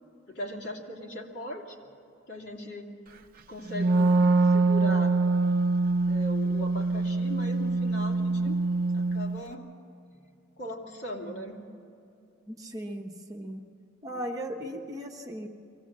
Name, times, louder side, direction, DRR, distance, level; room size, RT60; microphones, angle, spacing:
voice 1, 0.3-1.9 2.3-2.9 3.5-4.2 4.4-5.2 6.1-8.6 8.9-9.7 10.1-11.6 14.0-14.3, equal, 60° left, -1 dB, 2.9 m, -39 dB
Wind instrument woodwind instrument, 3.7-9.4, right 3 dB, 45° right, 0.7 m, -24 dB
voice 2, 12.5-13.6 14.0-15.5, equal, 15° right, 1 dB, 1.0 m, -37 dB
24.0 x 17.0 x 7.4 m, 2.5 s
head